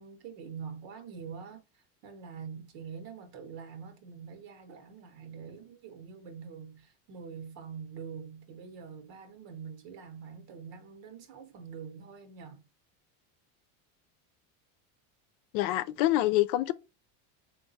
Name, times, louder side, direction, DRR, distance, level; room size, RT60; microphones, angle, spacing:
voice 1, 0.0-1.6 2.0-12.6, right 6 dB, 80° right, 1.2 m, -45 dB
voice 2, 15.5-16.7, left 15 dB, 75° left, 0.6 m, -26 dB
3.5 x 2.6 x 4.1 m
supercardioid pair, 115°, 47 cm